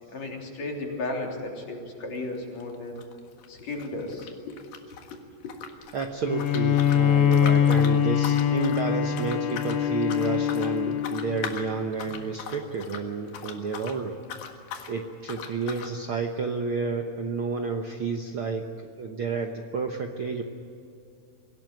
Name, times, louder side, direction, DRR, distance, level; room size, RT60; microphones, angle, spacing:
voice 1, 0.1-3.0 3.5-4.6 4.8-5.5 9.5-9.6 10.9-11.0, left 2 dB, 50° left, 0 dB, 4.4 m, -35 dB
sound 1, 2.1-2.3 2.6-5.2 5.4-14.0 14.2-14.9 15.3-15.9, left 7 dB, 90° left, 3.6 m, -40 dB
voice 2, 5.9-14.2 14.9-18.7 19.0-20.4, right 4 dB, 90° right, 4 dB, 1.1 m, -30 dB
Bowed string instrument, 6.2-11.7, left 9 dB, 75° left, 1.5 m, -23 dB
25.0 x 17.0 x 9.2 m, 2.6 s
omnidirectional pair, 4.2 m